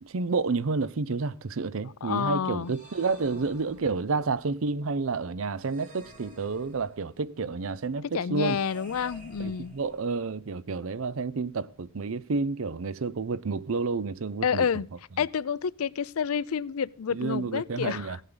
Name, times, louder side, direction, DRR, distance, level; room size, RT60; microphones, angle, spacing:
voice 1, 0.0-8.6 9.4-14.7 17.1-18.2, right 4 dB, 70° right, 0.6 m, -30 dB
voice 2, 2.0-2.7 8.0-9.8 14.4-14.9 15.2-18.2, left 7 dB, 90° left, 0.5 m, -29 dB
sound 1, 2.6-4.3 5.6-7.2 8.5-10.3, right 1 dB, 35° right, 3.7 m, -51 dB
15.5 x 9.1 x 3.9 m
head